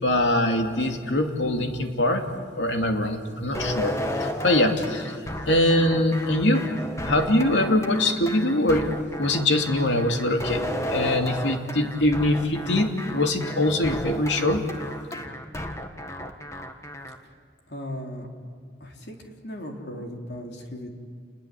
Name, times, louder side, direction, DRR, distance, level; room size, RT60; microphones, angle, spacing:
voice 1, 0.0-2.3 2.6-3.9 4.2-5.2 5.5-6.7 7.0-8.9 9.2-10.6 10.9-14.6, left 1 dB, 85° left, 4 dB, 2.7 m, -23 dB
sound 1, 3.5-17.2, left 1 dB, 15° left, 1.6 m, -33 dB
voice 2, 17.7-18.3 18.8-19.2 19.4-20.9, equal, 65° left, 1 dB, 3.8 m, -36 dB
29.0 x 21.0 x 8.5 m, 2.1 s
head